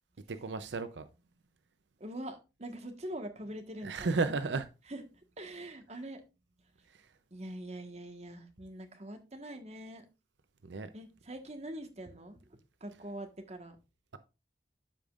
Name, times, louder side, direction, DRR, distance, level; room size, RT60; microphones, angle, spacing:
voice 1, 0.3-1.1 3.8-4.7 10.6-10.9, right 3 dB, 90° right, 0.6 m, -33 dB
voice 2, 2.0-4.1 4.9-5.0 5.4-6.2 7.3-10.0 10.9-12.4 12.8-13.8, right 1 dB, 40° right, 1.4 m, -43 dB
13.0 x 5.2 x 2.5 m
head